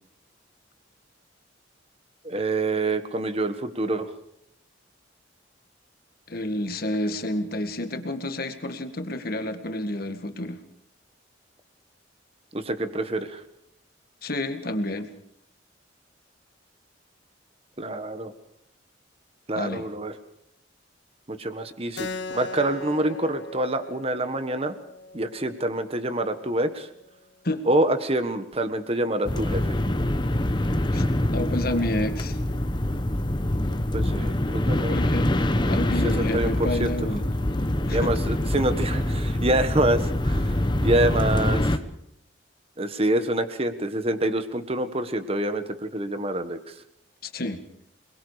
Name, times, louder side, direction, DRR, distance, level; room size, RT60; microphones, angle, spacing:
voice 1, 2.2-4.1 12.5-13.4 17.8-18.3 19.5-20.1 21.3-24.7 25.1-26.9 27.6-29.8 33.9-34.9 36.0-36.9 37.9-41.8 42.8-46.7, right 1 dB, 30° right, 9 dB, 1.5 m, -26 dB
voice 2, 6.3-10.6 14.2-15.1 19.6-19.8 27.4-27.6 30.9-31.0 31.3-32.4 34.9-35.3 35.7-37.2 37.9-38.1 47.2-47.6, left 1 dB, 50° left, 7 dB, 1.9 m, -29 dB
Keyboard (musical), 22.0-27.1, left 3 dB, 70° left, 1.2 m, -39 dB
sound 1, 29.2-41.8, left 1 dB, 25° left, 1.1 m, -25 dB
28.0 x 21.5 x 5.0 m, 0.77 s
head